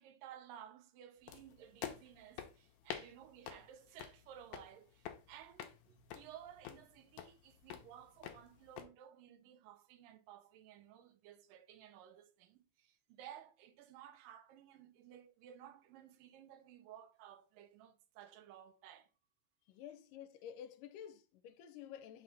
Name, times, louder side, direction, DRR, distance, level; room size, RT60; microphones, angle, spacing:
voice 1, 0.0-19.1, right 10 dB, 90° right, 2.4 m, -56 dB
sound 1, 1.3-8.9, left 10 dB, 75° left, 1.9 m, -50 dB
voice 2, 19.7-22.2, left 9 dB, 90° left, 2.2 m, -51 dB
5.8 x 3.3 x 5.2 m
omnidirectional pair, 3.8 m